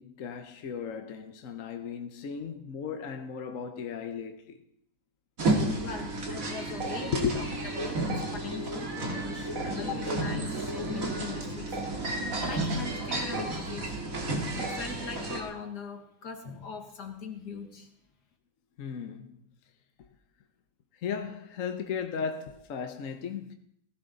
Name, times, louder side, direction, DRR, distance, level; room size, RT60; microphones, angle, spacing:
voice 1, 0.0-4.6 7.1-7.4 18.8-19.4 21.0-23.5, left 6 dB, 55° left, 1.2 m, -35 dB
sound 1, 5.4-15.4, right 2 dB, 55° right, 2.5 m, -32 dB
voice 2, 5.8-11.8 12.4-14.3 14.6-17.9, left 4 dB, 75° left, 2.4 m, -41 dB
17.0 x 15.5 x 4.0 m
omnidirectional pair, 1.8 m